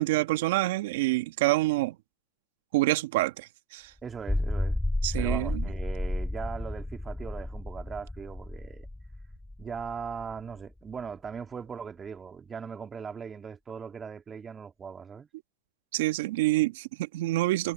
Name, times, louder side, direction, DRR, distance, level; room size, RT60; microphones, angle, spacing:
voice 1, 0.0-2.0 2.7-3.9 5.0-5.7 15.9-17.7, right 18 dB, 65° right, 1.4 m, -27 dB
voice 2, 4.0-4.8 5.2-8.9 9.6-15.3, right 6 dB, 20° right, 2.7 m, -39 dB
sound 1, 4.1-10.6, left 1 dB, 5° left, 0.6 m, -32 dB
hypercardioid pair, 120°, 0 cm